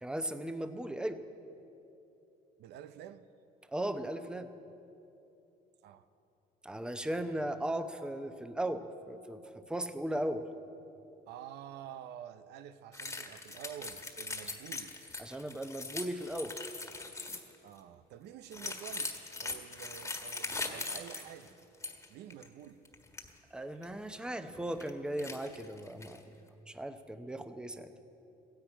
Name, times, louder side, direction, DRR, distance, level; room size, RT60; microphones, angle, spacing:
voice 1, 0.0-1.2 3.7-4.5 6.6-9.4 9.7-10.4 15.2-16.6 23.5-26.2 26.7-27.9, right 1 dB, 5° right, 0.8 m, -37 dB
voice 2, 2.6-3.3 5.8-6.1 11.3-15.0 17.6-21.5 22.1-22.9, right 10 dB, 80° right, 0.6 m, -49 dB
pieces of glass, 12.9-17.6 18.5-22.1 22.3-22.5 22.8-23.3 23.8-23.9 24.5-24.9 25.2-26.2, left 3 dB, 15° left, 1.6 m, -41 dB
15.5 x 10.5 x 8.9 m
cardioid pair, 110°, 17 cm